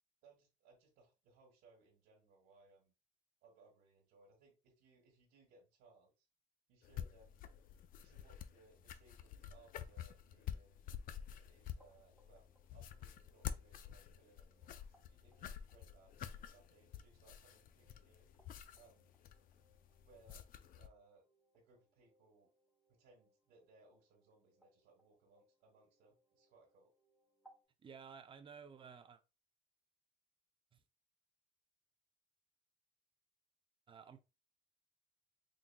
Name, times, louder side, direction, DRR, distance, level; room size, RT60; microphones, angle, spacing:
voice 1, 0.2-2.9 3.4-6.3 6.7-7.5 8.0-10.9 11.5-12.4 12.7-18.3 18.7-19.1 20.0-20.4 20.8-21.3 21.5-22.5 22.9-26.9, right 3 dB, 90° right, 1.3 m, -67 dB
sound 1, 6.8-20.9, left 9 dB, 55° left, 0.4 m, -49 dB
sound 2, 11.8-27.6, right 1 dB, 5° left, 1.5 m, -74 dB
voice 2, 27.8-29.2 30.7-30.8 33.9-34.2, right 6 dB, 30° right, 0.5 m, -54 dB
3.9 x 3.6 x 2.2 m
cardioid pair, 110°, 17 cm